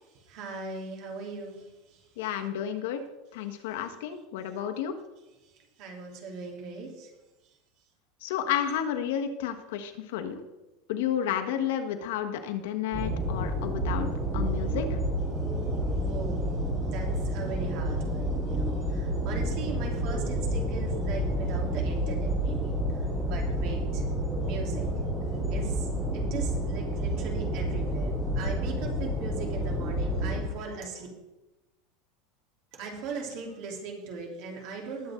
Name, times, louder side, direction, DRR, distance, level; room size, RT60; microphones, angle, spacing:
voice 1, 0.1-2.1 5.4-7.1 16.0-24.0 24.4-24.9 25.5-25.9 26.1-31.1 32.7-35.1, right 4 dB, 50° right, 1 dB, 3.3 m, -39 dB
voice 2, 2.2-3.0 3.3-4.9 8.2-10.4 10.9-14.1 14.3-15.0, left 9 dB, 75° left, 6 dB, 1.3 m, -31 dB
sound 1, 12.9-30.4, right 1 dB, 15° right, 3.8 m, -29 dB
19.5 x 7.9 x 3.8 m, 1.0 s
supercardioid pair, 160°, 0 cm